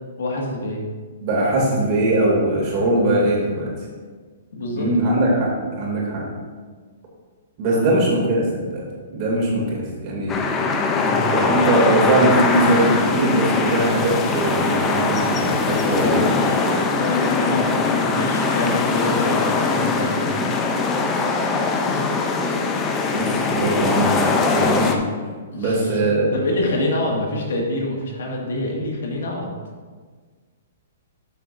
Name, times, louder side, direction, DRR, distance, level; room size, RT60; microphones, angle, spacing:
voice 1, 0.2-0.8 4.5-4.9 7.7-8.0 10.9-11.2 17.0-20.4 25.5-29.5, left 2 dB, 80° left, -1 dB, 2.0 m, -26 dB
voice 2, 1.2-3.7 4.8-6.2 7.6-8.8 9.1-10.4 11.3-16.8 23.1-25.0 25.6-26.3, right 1 dB, 35° right, -3 dB, 2.6 m, -21 dB
sound 1, 10.3-25.0, left 4 dB, 15° left, 0.6 m, -21 dB
12.0 x 6.7 x 2.7 m, 1.5 s
hypercardioid pair, 160°, 0 cm